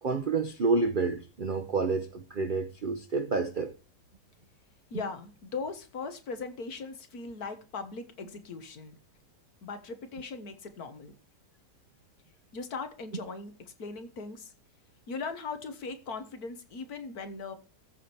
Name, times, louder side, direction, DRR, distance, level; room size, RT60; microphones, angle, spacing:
voice 1, 0.0-3.7, right 4 dB, 50° right, 0.6 m, -29 dB
voice 2, 4.9-8.9 9.6-11.1 12.5-13.5 13.8-14.5 15.1-17.5, left 4 dB, 65° left, 1.8 m, -39 dB
14.0 x 5.0 x 4.4 m
omnidirectional pair, 1.8 m